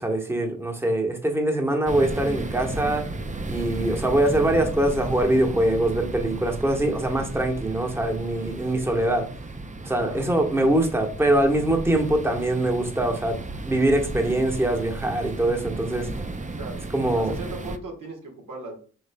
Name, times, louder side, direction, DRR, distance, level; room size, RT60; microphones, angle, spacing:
voice 1, 0.0-3.1 3.5-9.3 9.8-13.4 13.6-16.1 16.9-17.3, right 1 dB, 10° right, 2 dB, 1.1 m, -23 dB
sound 1, 1.9-17.8, right 2 dB, 25° right, 0.6 m, -34 dB
voice 2, 10.0-10.3 16.6-16.8 17.2-18.8, right 2 dB, 75° right, 0 dB, 1.5 m, -37 dB
5.1 x 3.6 x 2.2 m, 0.40 s
supercardioid pair, 40°, 32 cm